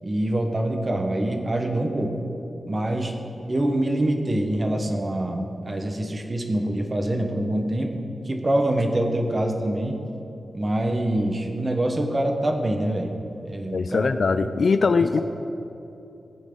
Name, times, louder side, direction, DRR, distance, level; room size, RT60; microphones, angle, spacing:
voice 1, 0.0-2.2 2.7-3.2 3.5-10.0 10.5-14.1 15.0-15.1, right 1 dB, 30° right, 4 dB, 1.3 m, -25 dB
voice 2, 13.7-15.2, left 4 dB, 55° left, 11 dB, 0.3 m, -21 dB
18.0 x 9.2 x 3.9 m, 2.9 s
wide cardioid pair, 100°, 0 cm